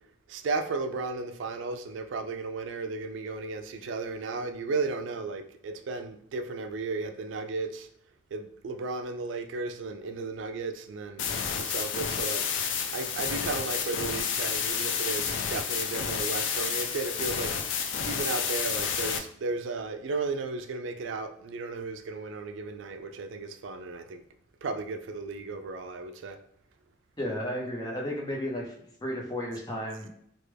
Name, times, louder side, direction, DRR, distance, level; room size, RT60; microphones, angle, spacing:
voice 1, 0.3-7.9 8.3-11.3 11.6-12.5 12.9-17.6 18.1-24.2 24.6-26.4, right 3 dB, 80° right, 0.4 m, -34 dB
sound 1, 11.2-19.2, left 7 dB, 80° left, 0.4 m, -30 dB
voice 2, 27.2-28.7 29.0-30.1, equal, 20° left, 0.6 m, -33 dB
3.2 x 2.1 x 3.3 m
head